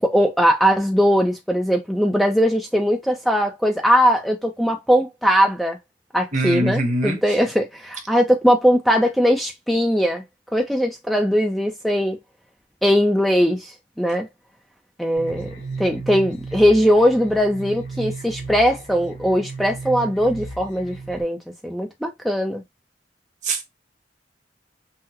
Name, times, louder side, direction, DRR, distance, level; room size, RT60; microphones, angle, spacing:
voice 1, 0.0-5.8 6.1-10.2 10.5-12.2 12.8-13.7 14.0-14.3 15.0-15.5 15.8-21.4 21.6-22.6, equal, ahead, 0.5 m, -20 dB
voice 2, 6.3-7.4 23.4-23.6, right 1 dB, 40° right, 1.1 m, -23 dB
sound 1, 15.2-21.2, right 4 dB, 70° left, 2.3 m, -35 dB
5.7 x 2.1 x 2.9 m
head